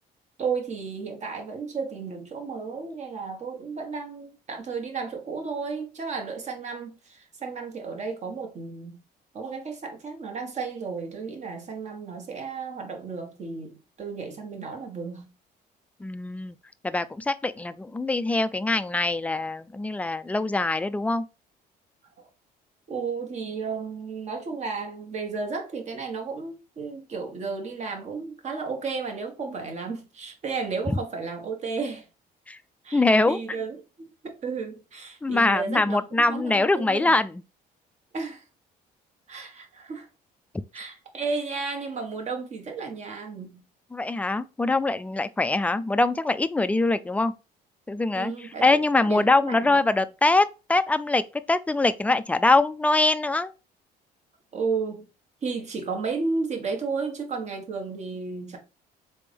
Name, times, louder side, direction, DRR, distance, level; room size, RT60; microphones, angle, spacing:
voice 1, 0.4-9.0 9.3-15.3 22.2-22.3 22.9-32.1 32.8-37.1 38.1-38.4 39.3-40.1 40.7-43.6 48.1-49.8 54.5-55.1 55.4-58.6, right 4 dB, 45° right, 1.4 m, -33 dB
voice 2, 16.0-16.6 16.8-21.3 32.5-32.6 32.9-33.4 35.2-37.4 43.9-47.3 47.9-51.2 51.5-53.5, left 2 dB, 10° left, 0.3 m, -23 dB
4.2 x 3.4 x 3.4 m
cardioid pair, 110°, 17 cm